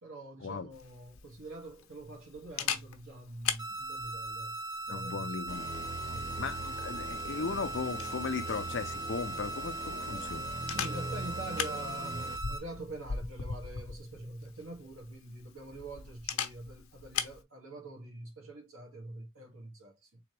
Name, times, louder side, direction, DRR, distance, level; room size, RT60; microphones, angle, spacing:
voice 1, 0.0-5.4 6.0-6.3 10.7-20.2, right 2 dB, 75° right, 1.9 m, -45 dB
Camera, 0.7-17.4, left 7 dB, 80° left, 0.8 m, -41 dB
sound 1, 3.6-12.6, right 2 dB, 20° right, 0.8 m, -39 dB
voice 2, 4.9-5.9 6.4-10.5, left 4 dB, 55° left, 0.5 m, -37 dB
sound 2, 5.5-12.4, right 1 dB, 15° left, 1.2 m, -42 dB
3.8 x 3.3 x 3.2 m
head